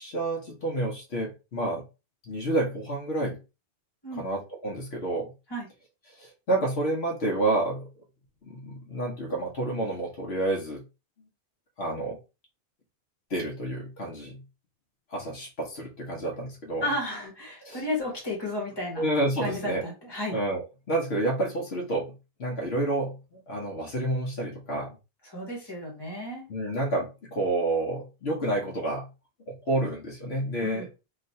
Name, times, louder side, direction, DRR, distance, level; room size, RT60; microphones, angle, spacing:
voice 1, 0.0-1.8 2.2-3.4 4.2-5.3 6.1-7.9 8.4-10.8 11.8-12.2 13.3-14.4 15.1-16.9 17.6-17.8 19.0-19.8 20.3-22.1 22.4-25.0 26.5-29.1 29.5-30.8, right 2 dB, 75° left, -1 dB, 1.2 m, -29 dB
voice 2, 16.8-19.1 19.4-20.4 25.2-26.4 30.6-30.9, left 1 dB, 20° left, -2 dB, 1.4 m, -33 dB
3.2 x 2.8 x 2.7 m, 0.29 s
omnidirectional pair, 1.1 m